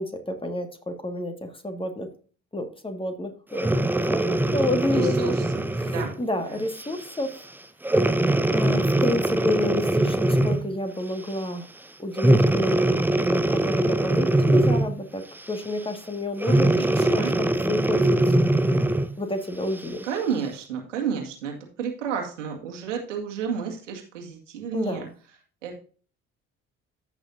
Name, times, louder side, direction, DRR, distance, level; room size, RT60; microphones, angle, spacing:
voice 1, 0.0-2.1 2.5-5.3 5.8-7.3 8.5-11.7 12.0-15.2 15.5-18.4 19.2-20.0 24.7-25.1, left 1 dB, 15° left, 6 dB, 1.9 m, -30 dB
Breathing, 3.5-6.2 6.8-7.0 7.8-10.7 12.2-15.0 16.4-19.1 19.8-19.9, right 1 dB, 5° right, 0.7 m, -22 dB
voice 2, 4.9-5.3 5.9-6.1 16.5-17.3 20.1-25.0 25.6-25.8, right 7 dB, 80° right, 1 dB, 2.1 m, -31 dB
14.5 x 6.2 x 2.7 m, 0.41 s
figure-of-eight pair, 55°, 37 cm